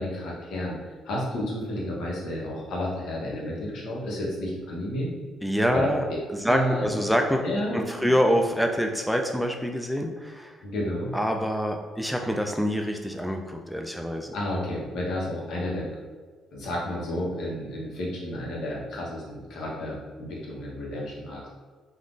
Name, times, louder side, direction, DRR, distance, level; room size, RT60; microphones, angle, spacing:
voice 1, 0.0-5.1 5.7-5.9 6.5-6.9 7.4-8.1 10.6-11.1 14.3-15.9 16.5-21.5, left 1 dB, 70° left, -4 dB, 0.9 m, -31 dB
voice 2, 5.4-7.4 7.7-10.6 11.1-14.3, equal, ahead, 3 dB, 0.3 m, -26 dB
3.4 x 2.5 x 2.5 m, 1.5 s
supercardioid pair, 60°, 0 cm